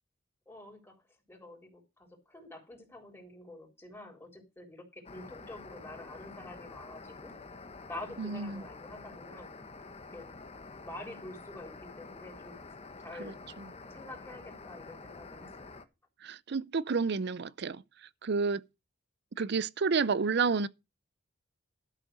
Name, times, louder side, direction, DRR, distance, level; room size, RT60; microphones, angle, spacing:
voice 1, 0.5-1.0 1.3-7.3 7.9-9.5 10.1-10.3 10.7-12.7 13.0-13.4 13.9-15.7, left 2 dB, 10° left, 3.8 m, -47 dB
sound 1, 5.0-15.8, left 3 dB, 30° left, 1.1 m, -48 dB
voice 2, 8.2-8.6 13.2-13.7 16.2-17.8 18.2-18.6 19.4-20.7, right 5 dB, 55° right, 0.5 m, -30 dB
12.5 x 6.6 x 6.2 m
head